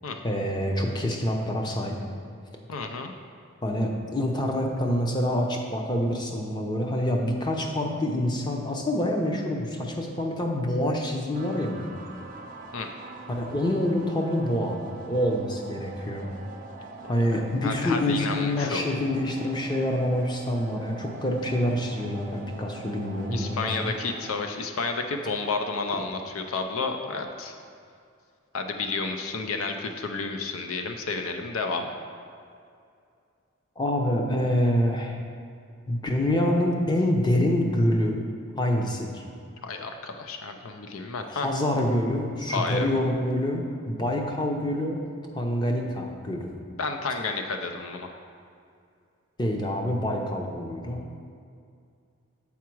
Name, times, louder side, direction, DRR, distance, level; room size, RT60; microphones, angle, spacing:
voice 1, 0.2-2.0 3.6-12.0 13.4-16.3 17.1-23.9 33.8-35.2 35.9-38.2 38.6-39.2 41.3-45.0 45.3-46.5 49.4-51.0, left 1 dB, 20° left, 1 dB, 0.6 m, -26 dB
voice 2, 2.7-3.1 12.7-12.9 17.6-19.0 23.3-27.5 28.5-31.9 39.6-41.5 42.5-42.9 46.8-48.1, left 4 dB, 85° left, 5 dB, 0.5 m, -31 dB
sound 1, 11.3-24.3, right 3 dB, 40° right, 0.6 m, -43 dB
7.2 x 4.7 x 4.6 m, 2.4 s
head